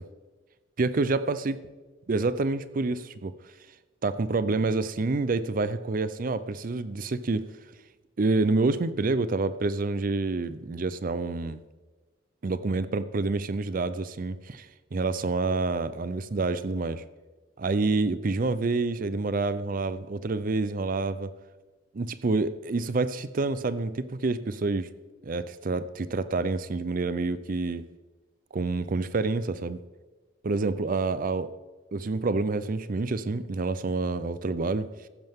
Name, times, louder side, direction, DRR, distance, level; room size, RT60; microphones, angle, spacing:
voice 1, 0.8-1.7 2.1-3.5 4.0-7.5 8.2-11.6 12.4-17.0 17.6-21.3 21.9-24.9 25.2-27.9 28.5-29.8 30.4-31.5 31.9-35.1, right 3 dB, 45° right, 14 dB, 0.5 m, -28 dB
15.0 x 11.0 x 3.6 m, 1.2 s
head